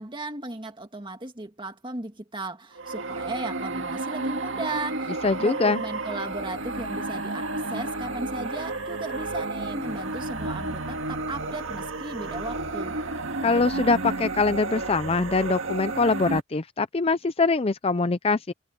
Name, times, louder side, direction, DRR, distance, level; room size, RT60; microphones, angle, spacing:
voice 1, 0.0-12.9, right 2 dB, 25° right, 1.9 m, -36 dB
sound 1, 2.8-16.4, right 2 dB, 65° right, 2.1 m, -31 dB
voice 2, 5.2-5.8 13.4-18.5, left 3 dB, 30° left, 0.5 m, -23 dB
head